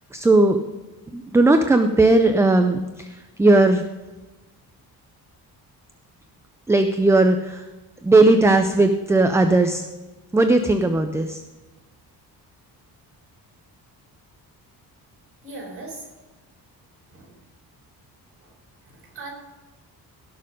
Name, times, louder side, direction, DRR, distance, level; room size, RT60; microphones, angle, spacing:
voice 1, 0.1-0.6 1.1-3.9 6.7-7.7 8.0-9.8 10.3-11.4, right 2 dB, 10° right, 7 dB, 0.4 m, -17 dB
voice 2, 15.4-16.1 17.1-17.4 18.4-18.5 18.8-19.3, right 2 dB, 35° right, -2 dB, 4.8 m, -39 dB
17.0 x 6.7 x 5.1 m, 1.2 s
cardioid pair, 170°, 38 cm